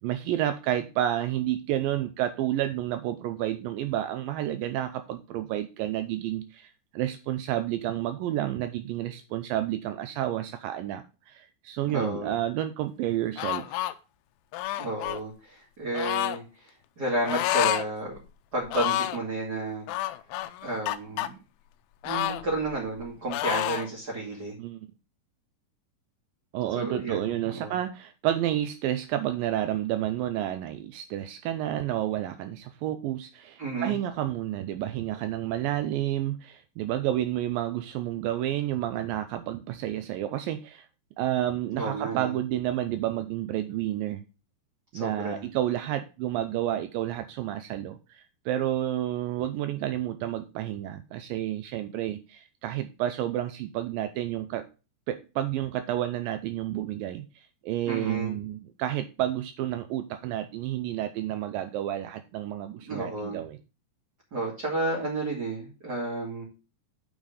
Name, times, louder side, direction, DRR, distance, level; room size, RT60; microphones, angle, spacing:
voice 1, 0.0-13.8 24.6-24.9 26.5-40.9 41.2-44.2 44.9-54.7 55.1-63.6, right 12 dB, 80° right, 9 dB, 2.3 m, -30 dB
voice 2, 11.9-12.4 14.8-18.2 18.5-19.9 20.6-21.3 22.0-24.6 26.7-27.8 33.6-34.0 41.7-42.4 44.9-45.4 57.9-58.4 62.8-63.4 64.3-66.4, right 2 dB, 30° right, -5 dB, 2.6 m, -32 dB
sound 1, 13.4-13.9 14.5-15.2 15.9-16.4 17.2-17.9 18.2-18.3 18.7-19.2 19.9-21.3 22.0-23.0 23.3-23.9, left 15 dB, 85° left, 2.4 m, -29 dB
9.0 x 5.0 x 5.3 m, 0.31 s
omnidirectional pair, 4.1 m